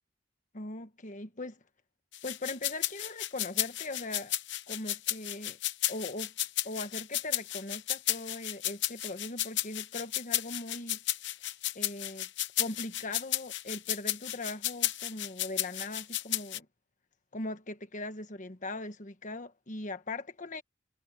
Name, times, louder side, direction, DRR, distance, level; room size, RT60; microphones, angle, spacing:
voice 1, 0.5-1.6 2.2-4.4 4.7-5.6 5.9-6.3 6.6-11.0 11.7-12.3 12.6-16.7 17.3-20.6, left 2 dB, 40° left, 1.4 m, -40 dB
sound 1, 2.1-16.6, left 14 dB, 60° left, 1.0 m, -33 dB
head